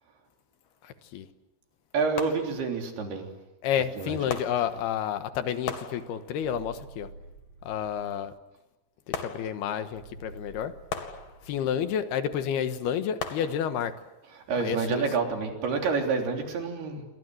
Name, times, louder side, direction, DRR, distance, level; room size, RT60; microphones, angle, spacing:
sound 1, 0.6-0.8 2.2-3.0 4.3-5.2 5.7-6.6 9.1-10.0 10.9-11.9 13.2-14.1 14.7-14.8, left 6 dB, 60° left, 3.7 m, -39 dB
voice 1, 1.9-3.3 4.0-4.3 14.3-17.1, right 4 dB, 70° right, 3 dB, 5.4 m, -28 dB
voice 2, 3.6-7.1 7.6-8.3 9.1-10.7 11.5-13.9 14.6-15.0, left 9 dB, 75° left, 10 dB, 3.3 m, -30 dB
sound 2, 6.4-8.2 9.9-11.9, right 3 dB, 50° right, 9.4 m, -49 dB
29.5 x 25.0 x 7.9 m, 0.97 s
omnidirectional pair, 4.7 m